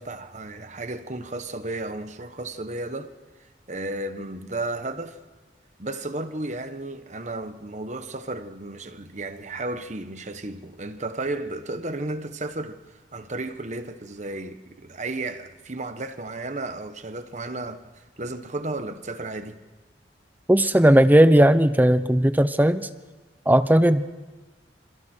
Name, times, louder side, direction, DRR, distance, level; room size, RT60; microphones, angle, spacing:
voice 1, 0.0-3.1 3.7-5.2 5.8-12.8 13.1-19.6, right 2 dB, 40° right, 1.3 m, -33 dB
voice 2, 20.5-22.9 23.5-24.1, right 1 dB, 10° right, 0.7 m, -17 dB
28.0 x 27.5 x 4.5 m
head